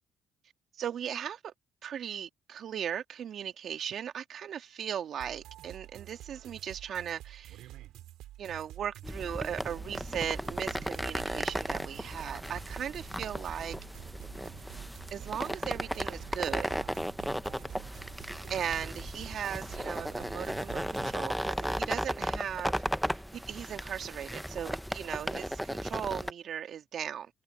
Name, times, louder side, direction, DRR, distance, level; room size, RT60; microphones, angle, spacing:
voice 1, 0.8-1.5 1.8-7.7 8.4-13.8 15.1-16.7 18.5-22.8 23.1-27.4, right 9 dB, 65° right, 2.4 m, -37 dB
sound 1, 5.2-21.2, right 14 dB, 80° right, 6.6 m, -49 dB
sound 2, 9.0-26.3, equal, ahead, 1.1 m, -35 dB
supercardioid pair, 65°, 0 cm